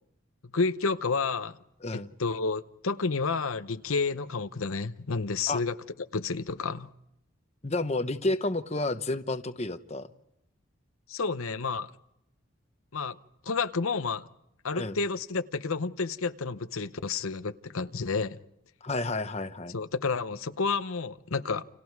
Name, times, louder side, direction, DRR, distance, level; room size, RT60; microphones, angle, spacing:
voice 1, 0.5-1.6 1.9-5.7 6.1-6.9 11.1-11.9 12.9-13.2 13.4-14.2 14.6-18.4 19.7-21.6, left 4 dB, 85° left, 11 dB, 0.8 m, -30 dB
voice 2, 7.6-10.1 14.7-15.0 18.8-19.7, left 2 dB, 30° left, 9 dB, 1.0 m, -30 dB
29.5 x 28.0 x 4.7 m, 0.83 s
head